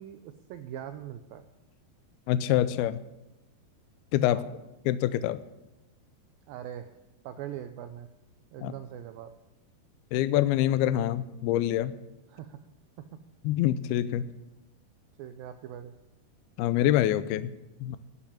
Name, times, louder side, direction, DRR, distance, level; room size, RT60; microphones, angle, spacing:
voice 1, 0.0-1.4 4.2-4.5 6.5-6.9 7.2-8.1 8.5-9.3 12.3-12.6 15.2-15.9, right 10 dB, 85° right, 8 dB, 2.1 m, -41 dB
voice 2, 2.3-3.0 4.1-4.4 4.9-5.4 8.6-8.7 10.1-11.9 13.4-14.3 16.6-17.5 17.8-18.0, left 12 dB, 80° left, 14 dB, 2.3 m, -25 dB
13.5 x 7.4 x 9.8 m, 0.96 s
omnidirectional pair, 4.8 m